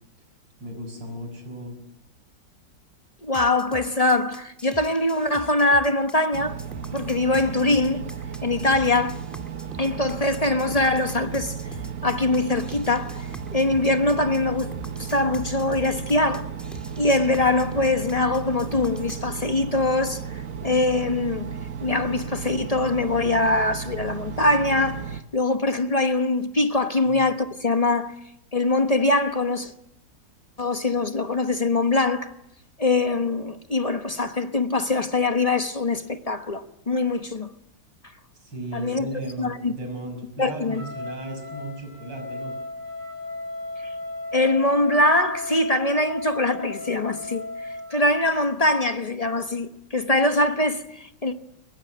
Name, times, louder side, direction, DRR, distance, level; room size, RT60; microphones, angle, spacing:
voice 1, 0.6-1.8 27.0-27.2 38.4-42.5, right 1 dB, 75° right, 6.8 m, -35 dB
voice 2, 3.2-6.6 6.9-8.0 8.4-9.2 9.8-11.6 12.0-14.7 15.0-16.5 17.0-21.5 21.8-28.1 28.5-29.7 30.6-32.3 32.8-37.5 38.7-39.1 39.4-39.7 40.4-40.8 44.3-51.3, left 2 dB, 25° left, 0.9 m, -23 dB
sound 1, 3.3-19.3, equal, ahead, 1.6 m, -44 dB
Engine, 6.3-25.2, right 7 dB, 50° right, 1.5 m, -34 dB
Trumpet, 40.7-48.0, left 2 dB, 25° right, 8.1 m, -36 dB
22.0 x 21.0 x 8.9 m
omnidirectional pair, 2.0 m